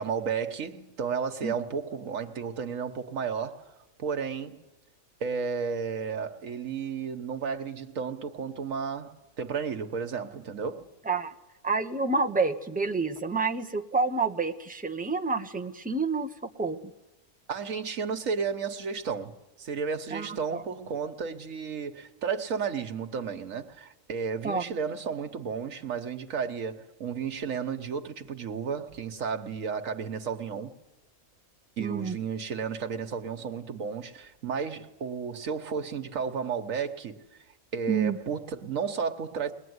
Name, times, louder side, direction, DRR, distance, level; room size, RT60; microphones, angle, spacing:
voice 1, 0.0-3.7 4.0-4.6 5.2-10.9 17.5-30.8 31.8-37.2 37.7-39.5, right 6 dB, 85° right, 1.6 m, -33 dB
voice 2, 11.6-16.3 16.6-16.8 20.1-20.6 24.4-24.6 31.8-32.2 37.9-38.2, right 4 dB, 5° right, 0.9 m, -28 dB
21.5 x 20.5 x 9.6 m
omnidirectional pair, 1.4 m